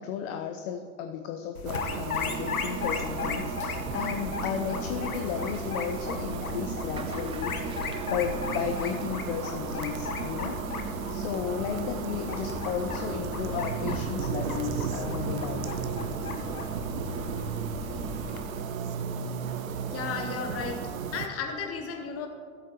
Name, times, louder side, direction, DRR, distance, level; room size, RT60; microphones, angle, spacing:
voice 1, 0.0-10.6 11.1-15.8, left 8 dB, 50° left, 6 dB, 0.7 m, -34 dB
sound 1, 1.5-18.4, left 5 dB, 85° left, 1.0 m, -36 dB
sound 2, 1.6-21.3, right 7 dB, 70° right, 0.9 m, -35 dB
sound 3, 2.3-18.6, right 4 dB, 15° right, 0.5 m, -43 dB
voice 2, 19.9-20.8 21.1-22.3, left 6 dB, 35° left, 3 dB, 1.5 m, -34 dB
15.0 x 8.1 x 3.2 m, 2.2 s
figure-of-eight pair, 85°, 42 cm